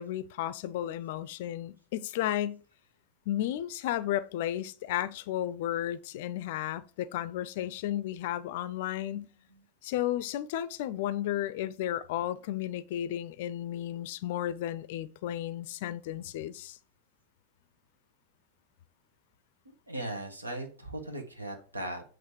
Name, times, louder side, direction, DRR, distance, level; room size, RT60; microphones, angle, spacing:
voice 1, 0.0-2.6 3.3-9.3 9.8-16.8, left 12 dB, 50° left, 0.4 m, -33 dB
voice 2, 19.6-22.0, right 1 dB, 80° right, 1.4 m, -38 dB
7.9 x 3.1 x 4.8 m
figure-of-eight pair, 90°, 0 cm